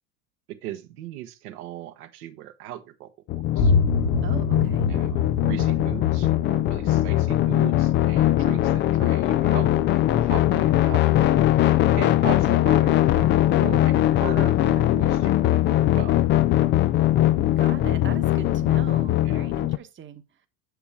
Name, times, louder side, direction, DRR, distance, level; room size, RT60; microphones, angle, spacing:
voice 1, 0.5-3.1 3.4-3.7 4.9-11.4 12.0-16.2 19.2-19.5, right 13 dB, 65° right, 1.2 m, -38 dB
sound 1, 3.3-19.8, left 14 dB, 25° left, 0.3 m, -21 dB
sound 2, 3.6-9.1, left 3 dB, 60° left, 1.8 m, -27 dB
voice 2, 4.2-4.9 17.6-20.2, right 8 dB, 25° right, 1.1 m, -40 dB
8.0 x 6.9 x 3.3 m
hypercardioid pair, 85°, 49 cm